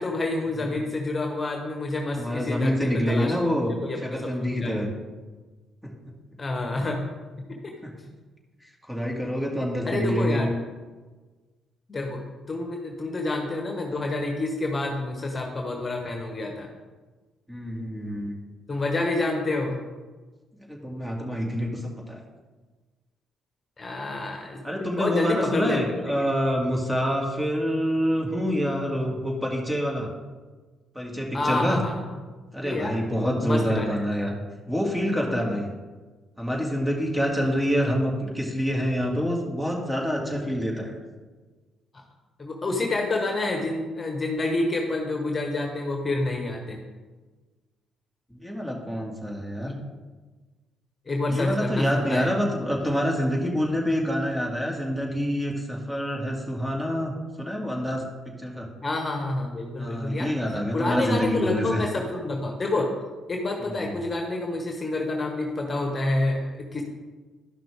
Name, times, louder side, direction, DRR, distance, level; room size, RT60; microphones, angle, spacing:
voice 1, 0.0-3.3 3.8-4.9 6.4-7.0 7.5-7.7 9.8-10.5 11.9-12.2 12.5-16.7 18.7-19.8 23.8-26.2 31.3-31.9 32.6-33.0 33.4-34.1 42.4-46.8 49.7-49.8 51.1-52.3 58.8-62.9 63.3-66.8, left 2 dB, 35° left, 2 dB, 1.4 m, -28 dB
voice 2, 2.2-3.7 4.0-4.9 5.8-5.9 7.8-7.9 8.9-10.5 17.5-18.4 20.6-22.2 24.6-30.1 30.9-31.8 32.5-34.3 34.7-35.7 36.4-41.0 48.3-49.7 51.3-58.1 58.4-58.7 59.8-61.8 63.6-63.9, equal, 5° right, -1 dB, 2.4 m, -27 dB
12.0 x 5.8 x 3.6 m, 1.3 s
hypercardioid pair, 55°, 0 cm